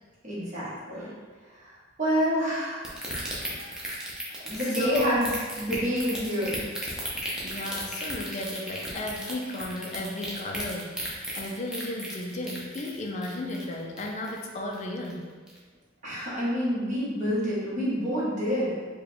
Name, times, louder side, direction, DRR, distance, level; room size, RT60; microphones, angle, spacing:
voice 1, 0.2-1.1 1.5-2.9 3.3-3.8 4.4-5.3 5.6-6.7 16.0-18.8, equal, 40° right, -8 dB, 1.3 m, -28 dB
sound 1, 2.8-14.5 14.7-15.1 15.5-15.6, equal, 5° right, 0.6 m, -35 dB
voice 2, 4.8-5.2 7.4-15.3, left 1 dB, 35° left, 0 dB, 0.4 m, -34 dB
4.6 x 2.3 x 3.4 m, 1.4 s
head